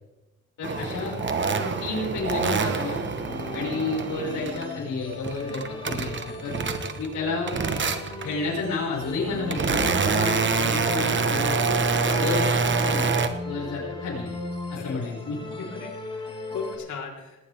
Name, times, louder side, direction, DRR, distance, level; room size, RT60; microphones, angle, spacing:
voice 1, 0.6-1.1 1.6-3.0 3.5-6.5 7.0-7.9 8.2-11.8 12.2-13.1 13.4-14.3 14.7-15.7, left 3 dB, 80° left, -6 dB, 5.9 m, -31 dB
sound 1, 0.6-4.7 5.1-7.1 7.5-8.3 9.0-13.3, right 4 dB, 40° right, 1.3 m, -26 dB
sound 2, 0.8-16.8, left 2 dB, 15° left, 5.0 m, -38 dB
voice 2, 12.0-12.4 14.7-15.0 15.8-17.4, left 5 dB, 65° left, 0 dB, 4.2 m, -37 dB
19.0 x 18.5 x 3.6 m, 1.1 s
cardioid pair, 145°, 31 cm